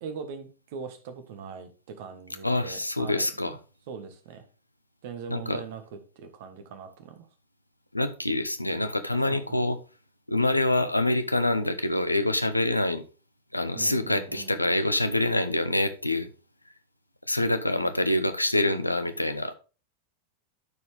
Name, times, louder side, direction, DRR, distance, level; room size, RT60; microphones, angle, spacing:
voice 1, 0.0-3.3 3.9-4.4 5.0-7.3 9.1-9.4 13.7-14.5, right 6 dB, 50° right, 1.4 m, -41 dB
voice 2, 2.4-3.6 5.3-5.6 7.9-9.8 10.3-13.0 13.5-16.3 17.3-19.5, left 1 dB, 85° left, 0.7 m, -26 dB
12.0 x 4.6 x 3.4 m
figure-of-eight pair, 90°, 0 cm